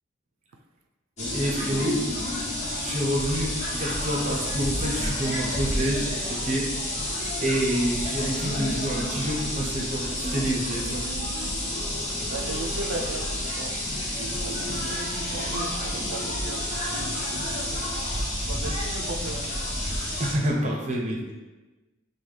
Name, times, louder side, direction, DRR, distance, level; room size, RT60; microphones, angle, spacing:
sound 1, 1.2-20.3, left 1 dB, 35° left, 0.8 m, -30 dB
voice 1, 1.3-6.7 7.4-11.1 20.2-21.3, right 1 dB, 35° right, -2 dB, 0.7 m, -28 dB
voice 2, 12.3-13.7 14.5-15.0 15.3-16.6 16.9-17.4 17.9-18.0 18.5-19.6, right 2 dB, 90° right, 5 dB, 0.4 m, -36 dB
5.5 x 2.2 x 3.2 m, 1.2 s
head